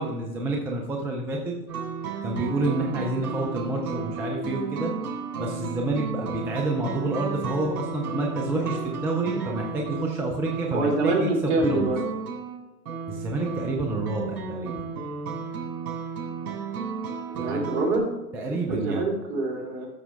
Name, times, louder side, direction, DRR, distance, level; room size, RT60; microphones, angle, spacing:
voice 1, 0.0-1.5 2.2-4.9 5.4-11.9 13.1-14.7 17.4-17.7 18.3-19.1, right 2 dB, 5° right, 1 dB, 0.3 m, -28 dB
sound 1, 1.7-18.0, right 5 dB, 65° right, 3.5 m, -33 dB
voice 2, 10.7-12.0 17.3-18.1 18.5-19.9, right 2 dB, 45° right, 0 dB, 3.5 m, -25 dB
12.5 x 7.0 x 3.4 m, 1.1 s
hypercardioid pair, 115°, 48 cm